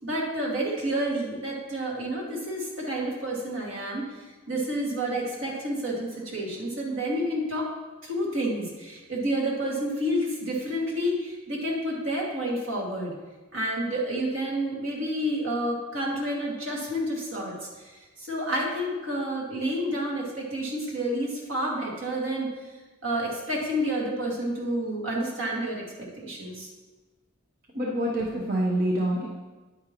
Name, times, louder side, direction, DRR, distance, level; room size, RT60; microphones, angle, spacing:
voice 1, 0.0-7.7 8.0-13.1 13.5-22.5 23.0-25.8 26.2-26.7, right 1 dB, 75° right, -2 dB, 2.2 m, -29 dB
voice 2, 27.7-29.3, right 1 dB, 45° right, -2 dB, 0.9 m, -26 dB
9.4 x 8.8 x 3.0 m, 1.2 s
head